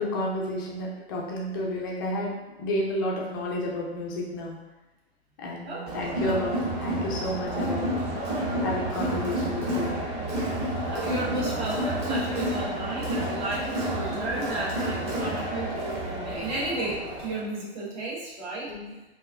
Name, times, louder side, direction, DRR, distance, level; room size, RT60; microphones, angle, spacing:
voice 1, 0.0-4.6 5.4-7.9 8.6-9.9 18.7-18.9, left 1 dB, 20° left, -3 dB, 0.4 m, -31 dB
voice 2, 5.6-6.3 10.5-15.8 16.2-18.7, right 2 dB, 40° right, -5 dB, 1.3 m, -33 dB
Crowd, 5.9-17.4, right 1 dB, 20° right, 1.1 m, -30 dB
4.4 x 2.6 x 2.4 m, 1.1 s
figure-of-eight pair, 120°, 33 cm